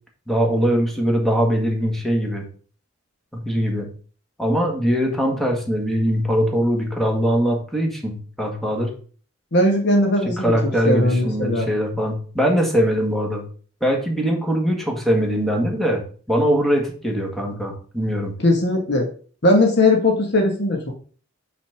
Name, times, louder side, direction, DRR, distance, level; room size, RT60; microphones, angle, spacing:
voice 1, 0.3-2.4 3.3-3.9 4.4-8.9 10.2-13.4 13.8-16.0 16.3-18.3, equal, ahead, 0 dB, 1.6 m, -21 dB
voice 2, 9.5-10.5 10.8-11.7 18.4-19.1 19.4-20.9, left 1 dB, 55° left, 2 dB, 1.4 m, -18 dB
5.8 x 4.1 x 6.0 m, 0.42 s
head